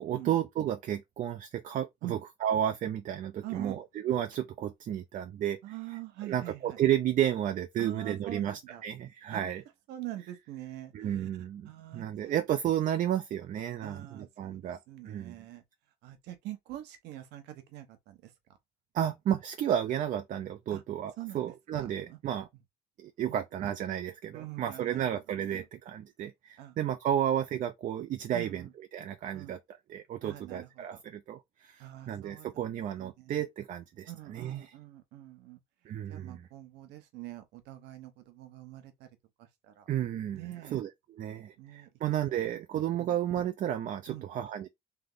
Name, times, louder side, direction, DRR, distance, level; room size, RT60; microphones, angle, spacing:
voice 1, 0.0-5.6 6.3-9.6 10.9-14.8 15.0-15.4 18.9-22.5 23.0-28.6 28.9-29.6 29.9-34.7 35.9-36.4 39.9-40.9 41.2-44.7, right 10 dB, 50° right, 0.5 m, -32 dB
voice 2, 3.4-3.8 5.6-6.8 7.8-8.8 9.3-9.4 9.9-11.3 11.6-12.4 13.8-15.6 16.0-18.3 20.7-20.8 21.2-22.2 23.2-23.4 24.3-25.7 26.6-26.8 28.3-28.7 29.3-29.6 30.2-31.0 31.8-32.5 33.0-33.3 34.1-35.6 36.1-39.1 39.4-39.9 40.3-40.8 41.6-41.9 42.3-42.5 43.0-43.2 44.1-44.3, right 15 dB, 85° right, 0.9 m, -44 dB
3.4 x 2.9 x 3.8 m
cardioid pair, 110°, 17 cm